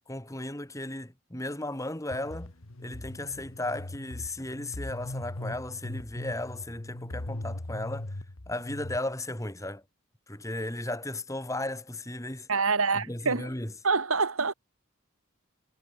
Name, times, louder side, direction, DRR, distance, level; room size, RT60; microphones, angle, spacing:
voice 1, 0.1-2.5 2.8-8.2 8.5-9.8 10.3-12.5 12.9-13.7, left 1 dB, 15° left, 2.1 m, -35 dB
sound 1, 2.1-9.0, left 1 dB, 70° left, 1.6 m, -40 dB
voice 2, 12.5-13.5 13.8-14.5, right 4 dB, 75° right, 2.0 m, -26 dB
head